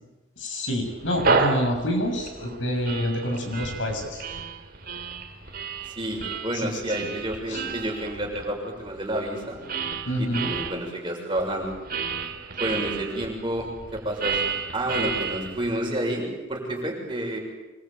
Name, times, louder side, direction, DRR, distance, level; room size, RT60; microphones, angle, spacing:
voice 1, 0.4-4.2 6.5-7.1 7.5-7.6 10.1-10.5, equal, 70° left, 3 dB, 6.9 m, -27 dB
sound 1, 0.9-10.7 11.4-15.8, right 4 dB, 50° right, 3.0 m, -31 dB
voice 2, 5.9-9.6 10.2-11.7 12.6-17.4, right 1 dB, 25° right, 0 dB, 6.5 m, -30 dB
25.5 x 22.5 x 9.0 m, 1.1 s
head